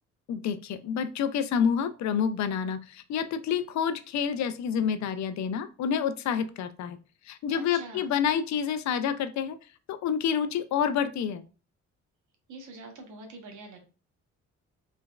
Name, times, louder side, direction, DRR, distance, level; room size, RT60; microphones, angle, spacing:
voice 1, 0.3-7.0 7.3-9.6 9.9-11.4, left 7 dB, 65° left, 12 dB, 0.5 m, -28 dB
voice 2, 7.5-8.1 12.5-13.8, right 3 dB, 75° right, 3 dB, 1.1 m, -44 dB
3.3 x 3.0 x 2.3 m, 0.35 s
cardioid pair, 90°, 30 cm